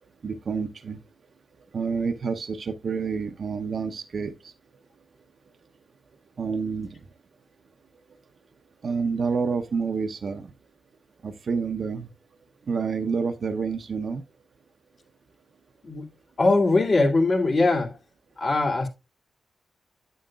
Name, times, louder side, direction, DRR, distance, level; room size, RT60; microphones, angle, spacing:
voice 1, 0.2-1.0 1.7-4.5 6.4-6.9 8.8-10.5 11.2-12.1 12.7-14.2, right 5 dB, 65° right, 0.7 m, -28 dB
voice 2, 16.4-18.0 18.4-18.9, left 3 dB, 55° left, 2.4 m, -21 dB
8.8 x 7.7 x 2.3 m
cardioid pair, 65°, 0 cm